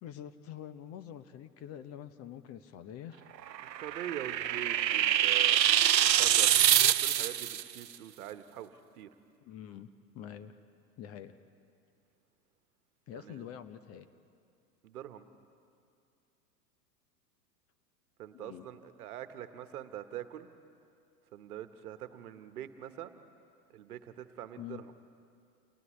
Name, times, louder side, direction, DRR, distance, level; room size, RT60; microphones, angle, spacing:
voice 1, 0.0-3.4 9.4-10.5 11.0-11.4 13.1-14.1 18.3-18.7 24.6-24.8, left 10 dB, 30° left, 11 dB, 0.9 m, -46 dB
sound 1, 3.5-7.6, right 11 dB, 85° right, 0.6 m, -25 dB
voice 2, 3.6-5.6 6.2-6.5 7.0-9.1 13.1-13.4 14.8-15.2 18.2-20.5 21.3-23.2 23.7-24.9, right 11 dB, 60° right, 10 dB, 1.4 m, -44 dB
29.5 x 29.0 x 3.3 m, 2.4 s
figure-of-eight pair, 95°, 49 cm